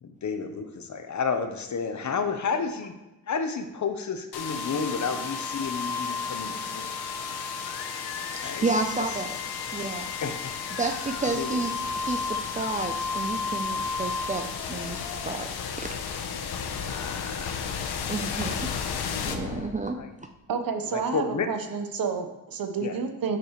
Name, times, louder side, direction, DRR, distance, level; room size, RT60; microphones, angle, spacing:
voice 1, 0.0-2.9 3.3-6.9 8.4-8.6 10.2-10.5 11.2-11.6 16.9-17.6 18.3-18.5 19.9-20.1 20.9-21.5 22.8-23.0, left 5 dB, 50° left, 7 dB, 0.9 m, -31 dB
sound 1, 4.3-20.2, left 5 dB, 90° left, 0.9 m, -32 dB
voice 2, 8.2-9.4 9.7-10.1 10.8-15.5 15.8-15.9 18.1-18.7 19.3-20.0, right 3 dB, 20° right, 4 dB, 0.5 m, -31 dB
voice 3, 20.5-23.4, right 5 dB, 65° right, 6 dB, 1.1 m, -30 dB
9.8 x 6.8 x 3.1 m, 0.99 s
cardioid pair, 100°, 37 cm